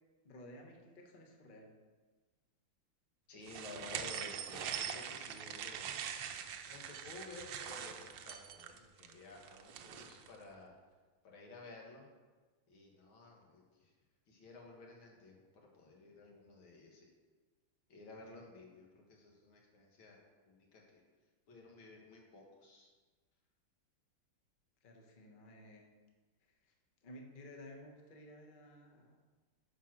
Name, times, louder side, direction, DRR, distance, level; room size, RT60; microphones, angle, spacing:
voice 1, 0.2-1.7 24.8-25.9 27.0-29.2, left 1 dB, 30° left, 1 dB, 0.9 m, -54 dB
voice 2, 3.3-5.9 6.6-10.8 11.2-12.1 12.7-13.9 14.3-17.1 17.9-20.2 20.5-21.0 21.5-22.9, left 3 dB, 70° left, -1 dB, 2.3 m, -54 dB
sound 1, 3.5-10.3, right 8 dB, 70° right, 1.3 m, -43 dB
10.0 x 5.0 x 6.1 m, 1.4 s
omnidirectional pair, 2.3 m